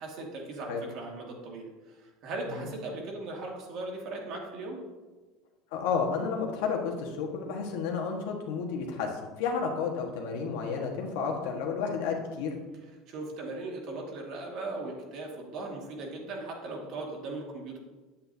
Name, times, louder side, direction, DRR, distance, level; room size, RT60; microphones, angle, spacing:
voice 1, 0.0-4.8 13.1-17.8, right 2 dB, 55° right, -1 dB, 2.0 m, -38 dB
voice 2, 5.7-12.6, left 5 dB, 80° left, 2 dB, 1.4 m, -31 dB
8.4 x 8.3 x 2.8 m, 1.3 s
supercardioid pair, 140°, 0 cm